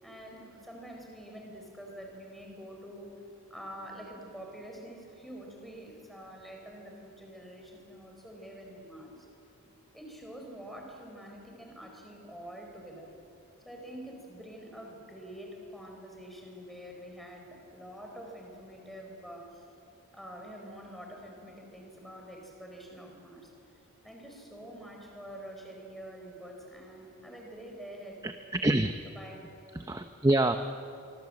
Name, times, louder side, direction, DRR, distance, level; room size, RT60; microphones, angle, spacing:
voice 1, 0.0-3.2 3.5-9.3 9.9-13.1 13.6-19.6 20.1-28.3 29.1-29.5, equal, ahead, 1 dB, 4.3 m, -46 dB
voice 2, 28.2-28.9 29.7-30.6, right 1 dB, 15° right, 8 dB, 0.6 m, -26 dB
24.5 x 24.5 x 7.7 m, 2.8 s
head